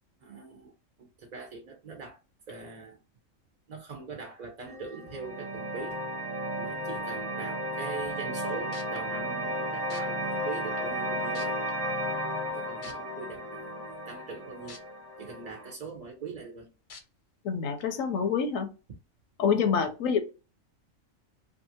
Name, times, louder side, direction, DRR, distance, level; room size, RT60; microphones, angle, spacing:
voice 1, 0.2-0.7 1.0-2.2 2.5-3.0 3.7-6.0 6.6-11.6 12.5-14.8 15.2-16.7, right 5 dB, 55° right, 0.5 m, -42 dB
sound 1, 4.7-15.7, equal, 30° right, 0.9 m, -34 dB
sound 2, 8.7-9.0 9.9-10.0 10.8-10.9 11.3-11.7 12.8-12.9 14.7-14.8 15.3-15.4 16.9-17.0 17.8-17.9, left 5 dB, 50° left, 0.6 m, -46 dB
voice 2, 17.4-18.7 19.4-20.2, left 6 dB, 80° left, 1.0 m, -27 dB
2.7 x 2.4 x 2.6 m
omnidirectional pair, 1.4 m